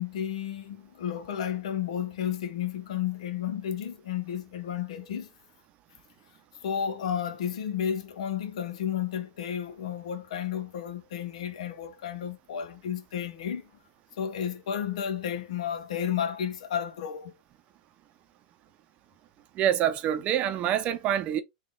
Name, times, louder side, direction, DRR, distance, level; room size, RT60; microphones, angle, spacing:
voice 1, 0.0-5.3 6.6-13.6 14.2-17.3, left 9 dB, 80° left, 0.8 m, -32 dB
voice 2, 19.6-21.4, right 10 dB, 40° right, 0.6 m, -26 dB
3.7 x 2.3 x 3.6 m
hypercardioid pair, 125°, 4 cm